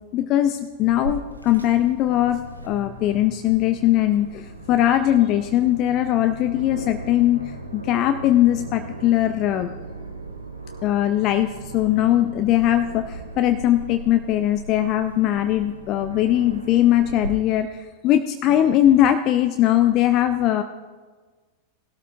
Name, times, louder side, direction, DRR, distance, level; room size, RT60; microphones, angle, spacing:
voice 1, 0.1-7.4 7.7-9.7 10.8-20.6, left 12 dB, 40° left, 8 dB, 0.5 m, -20 dB
Aircraft, 0.9-17.3, right 2 dB, 85° right, 1.0 m, -38 dB
18.5 x 12.5 x 2.4 m, 1.4 s
figure-of-eight pair, 90°, 0 cm